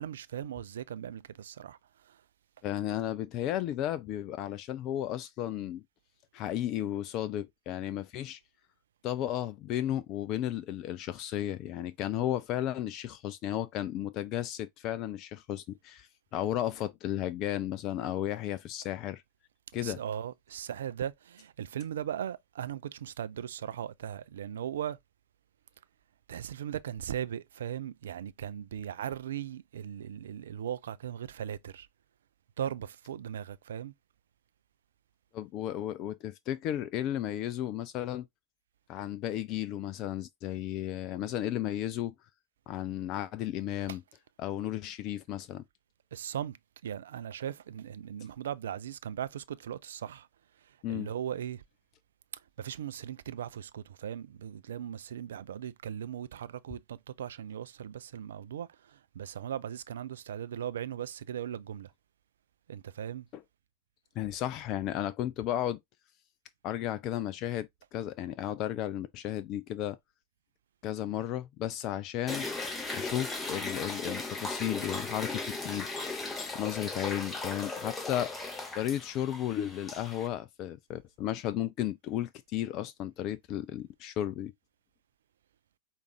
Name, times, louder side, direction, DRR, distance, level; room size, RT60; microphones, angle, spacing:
voice 1, 0.0-2.2 19.7-25.0 26.3-31.9 32.6-33.9 43.9-44.0 46.1-46.6 46.8-50.3 50.6-51.6 52.6-61.9 62.7-63.3, right 9 dB, 60° right, 0.3 m, -38 dB
voice 2, 2.6-5.8 6.3-8.4 9.0-19.2 19.7-20.0 35.3-38.3 38.9-42.1 42.7-44.0 44.4-45.6 50.8-51.1 63.3-63.4 64.2-65.8 66.6-70.0 70.8-72.5 72.9-75.9 76.5-78.3 78.7-84.5, left 12 dB, 35° left, 0.3 m, -34 dB
sound 1, 72.3-80.3, left 3 dB, 10° left, 1.1 m, -37 dB
4.9 x 2.5 x 3.2 m
figure-of-eight pair, 90°, 0 cm